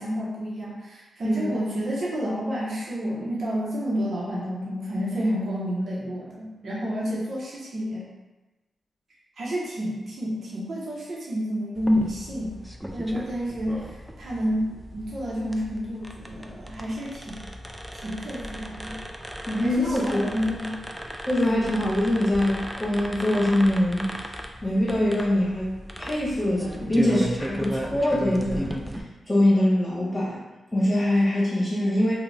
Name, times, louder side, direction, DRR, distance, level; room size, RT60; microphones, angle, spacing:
voice 1, 0.0-8.1 9.4-12.6 12.9-17.4 17.9-19.0 19.6-20.7 27.0-27.1, equal, 65° right, -6 dB, 0.7 m, -29 dB
sound 1, 11.7-29.0, equal, 5° right, 0.3 m, -36 dB
voice 2, 19.5-20.3 21.3-24.2 24.6-28.8 29.3-30.4 30.7-32.1, left 1 dB, 20° left, -8 dB, 1.0 m, -23 dB
2.4 x 2.1 x 3.1 m, 1.1 s
supercardioid pair, 40°, 0 cm